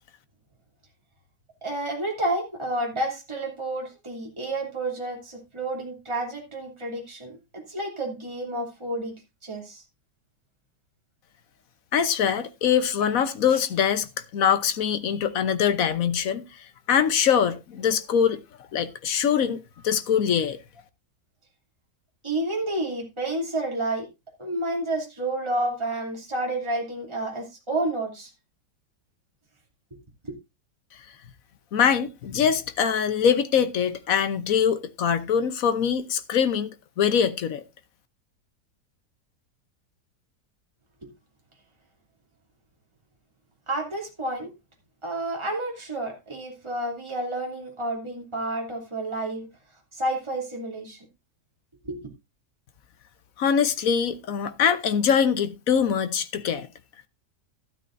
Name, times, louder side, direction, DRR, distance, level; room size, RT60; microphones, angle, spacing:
voice 1, 1.6-9.1 9.4-9.8 22.2-24.1 24.4-28.3 30.2-30.3 43.7-44.5 45.0-49.5 49.9-51.0 51.8-52.1, right 1 dB, 15° right, 3.0 m, -30 dB
voice 2, 11.9-16.4 16.9-18.4 18.7-20.6 31.7-36.7 37.0-37.6 53.4-56.7, left 7 dB, 60° left, 1.2 m, -23 dB
12.5 x 12.5 x 2.6 m
omnidirectional pair, 1.8 m